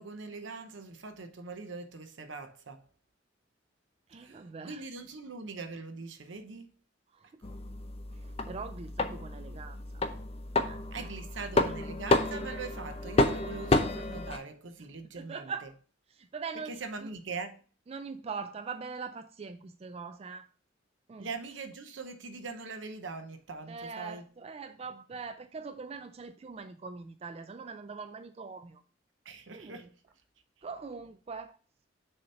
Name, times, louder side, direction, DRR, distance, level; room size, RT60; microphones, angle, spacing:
voice 1, 0.0-2.8 4.2-6.7 10.9-15.7 16.6-17.6 21.2-24.3 29.2-29.9, right 4 dB, 80° right, 0.8 m, -42 dB
voice 2, 4.1-4.8 7.1-7.3 8.2-10.0 10.7-11.1 11.4-11.5 15.2-15.7 16.2-17.1 17.9-20.5 21.1-21.3 23.7-28.8 29.5-29.8 30.6-31.6, right 5 dB, 30° right, 0.3 m, -42 dB
sound 1, 7.4-14.4, left 2 dB, 30° left, 0.5 m, -30 dB
6.6 x 2.9 x 5.4 m
head